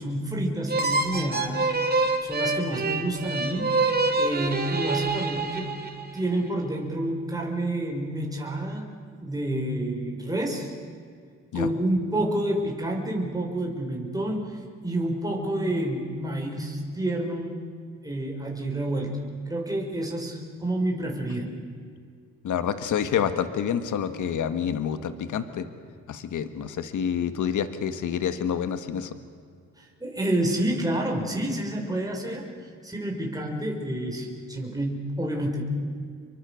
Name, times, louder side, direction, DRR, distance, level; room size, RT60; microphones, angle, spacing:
voice 1, 0.0-1.7 2.2-3.8 4.2-5.7 6.1-8.9 9.2-10.7 11.5-17.6 18.0-21.5 29.8-32.5 32.8-35.6, right 1 dB, 10° right, 0 dB, 5.5 m, -29 dB
sound 1, 0.7-6.2, right 3 dB, 30° right, 3.1 m, -26 dB
voice 2, 22.4-25.7 26.1-29.1, left 8 dB, 70° left, 10 dB, 1.7 m, -28 dB
28.5 x 23.5 x 6.5 m, 2.2 s
cardioid pair, 90°, 32 cm